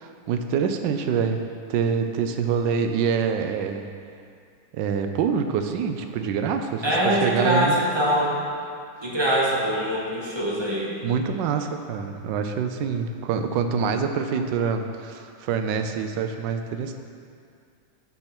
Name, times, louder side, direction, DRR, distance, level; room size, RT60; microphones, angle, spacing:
voice 1, 0.0-1.4 1.7-3.9 4.7-7.7 11.0-16.9, right 6 dB, 75° right, 6 dB, 1.1 m, -26 dB
voice 2, 6.8-8.4 9.0-10.9, equal, 35° right, -4 dB, 0.4 m, -23 dB
9.6 x 3.9 x 5.9 m, 2.3 s
omnidirectional pair, 2.3 m